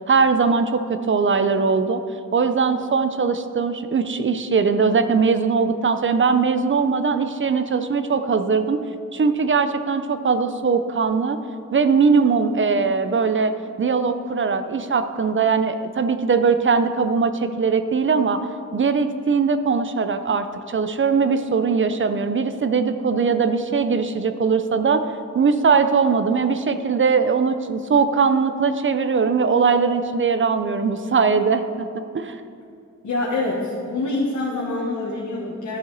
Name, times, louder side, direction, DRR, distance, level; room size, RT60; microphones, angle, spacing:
voice 1, 0.1-2.0 2.3-8.8 9.1-11.4 11.7-13.5 13.8-18.4 18.7-25.0 25.3-32.4, right 5 dB, 40° right, 9 dB, 0.5 m, -20 dB
voice 2, 33.0-35.8, left 2 dB, 70° left, -4 dB, 1.3 m, -25 dB
12.0 x 7.0 x 4.0 m, 2.4 s
wide cardioid pair, 120°, 30 cm